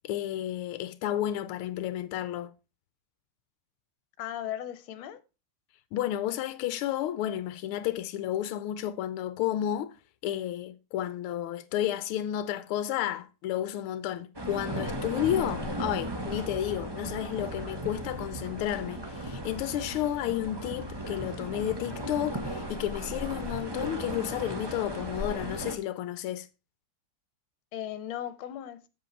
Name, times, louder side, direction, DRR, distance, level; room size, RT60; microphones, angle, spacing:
voice 1, 0.0-2.5 5.9-10.0 10.2-26.5, left 12 dB, 90° left, 1.5 m, -32 dB
voice 2, 4.2-5.2 27.7-28.8, left 11 dB, 70° left, 1.6 m, -37 dB
sound 1, 14.3-25.7, right 1 dB, 15° right, 0.9 m, -36 dB
7.7 x 7.6 x 3.2 m
omnidirectional pair, 2.4 m